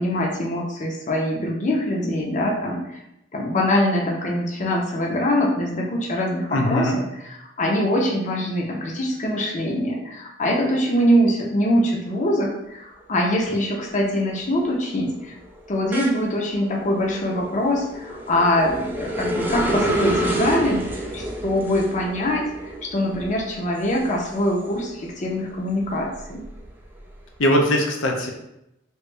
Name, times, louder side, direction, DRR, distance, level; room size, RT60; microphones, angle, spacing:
voice 1, 0.0-3.0 3.3-7.0 7.4-15.3 15.7-26.4, left 1 dB, 40° left, -1 dB, 0.6 m, -23 dB
voice 2, 6.5-7.0 27.4-28.3, equal, 80° left, 1 dB, 0.6 m, -20 dB
sound 1, 13.0-13.4 13.8-25.0 25.5-27.2, right 1 dB, 10° right, 0.4 m, -30 dB
3.2 x 2.5 x 3.2 m, 0.85 s
head